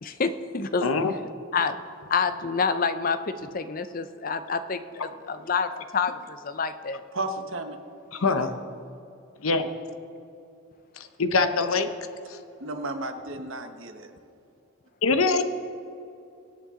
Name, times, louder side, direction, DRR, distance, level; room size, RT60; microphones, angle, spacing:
voice 1, 0.0-0.9 1.5-1.8 2.1-7.0, left 5 dB, 40° left, 11 dB, 0.6 m, -28 dB
voice 2, 0.8-1.1 8.1-8.5 9.4-9.7 11.0-11.9 12.3-12.4 15.0-15.4, left 4 dB, 80° left, 9 dB, 0.8 m, -23 dB
voice 3, 7.1-7.8 8.3-8.5 12.6-14.1, right 2 dB, 65° right, 6 dB, 1.2 m, -33 dB
24.0 x 8.6 x 3.7 m, 2.7 s
head